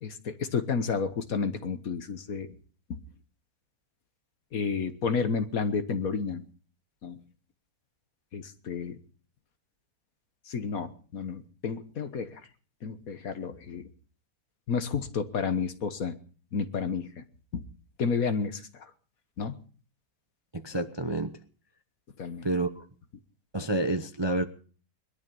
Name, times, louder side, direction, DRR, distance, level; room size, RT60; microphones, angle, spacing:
voice 1, 0.0-2.5 2.9-3.0 4.5-6.4 7.0-7.2 8.3-9.0 10.5-12.4 12.8-13.9 14.7-16.2 16.5-17.2 17.5-17.6 18.0-18.9 19.4-19.5 22.2-22.5, left 5 dB, 55° left, 10 dB, 1.6 m, -31 dB
voice 2, 20.6-21.4 22.4-22.8 23.5-24.4, right 2 dB, 20° right, 8 dB, 0.7 m, -29 dB
21.5 x 12.5 x 5.4 m, 0.42 s
omnidirectional pair, 1.9 m